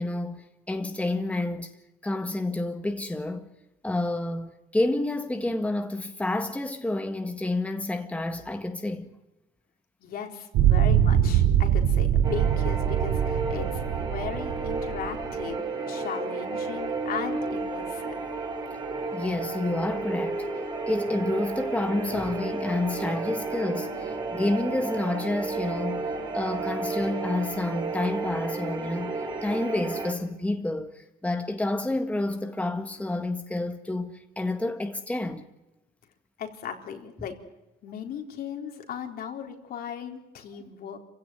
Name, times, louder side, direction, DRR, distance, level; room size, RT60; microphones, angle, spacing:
voice 1, 0.0-1.7 2.0-3.5 3.8-9.1 19.1-20.4 20.9-26.1 26.3-29.2 29.4-35.4, left 2 dB, 10° left, 1.8 m, -29 dB
voice 2, 10.0-18.2 36.4-37.3 37.8-41.0, left 8 dB, 65° left, 4.0 m, -37 dB
sound 1, 10.5-15.4, right 10 dB, 90° right, 2.6 m, -23 dB
sound 2, 12.2-30.1, right 3 dB, 25° right, 4.7 m, -32 dB
27.0 x 16.5 x 9.3 m
cardioid pair, 110°, 17 cm